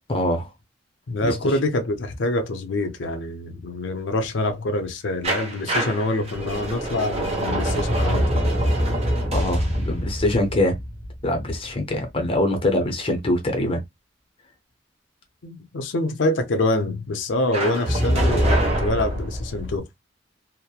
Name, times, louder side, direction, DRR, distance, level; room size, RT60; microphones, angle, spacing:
voice 1, 0.1-0.5 1.2-1.4 9.3-10.8 11.2-13.8, left 1 dB, 30° left, 0.6 m, -23 dB
voice 2, 1.1-8.4 15.4-19.9, left 2 dB, 85° left, 0.6 m, -25 dB
sound 1, 5.2-12.0 17.5-19.8, equal, 35° right, 0.7 m, -24 dB
2.9 x 2.1 x 2.2 m
head